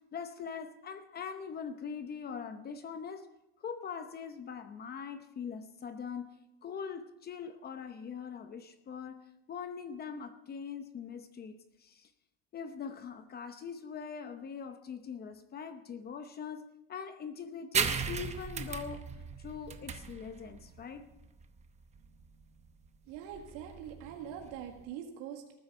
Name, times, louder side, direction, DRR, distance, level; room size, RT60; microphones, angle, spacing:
voice 1, 0.1-3.3 3.6-6.3 6.6-12.1 12.5-19.1 19.4-21.1, left 6 dB, 25° left, 9 dB, 0.8 m, -42 dB
sound 1, 17.7-24.9, right 6 dB, 15° right, 0.8 m, -37 dB
voice 2, 23.1-25.5, right 9 dB, 70° right, 3 dB, 1.9 m, -43 dB
19.0 x 9.7 x 5.4 m, 0.94 s
cardioid pair, 155°, 40 cm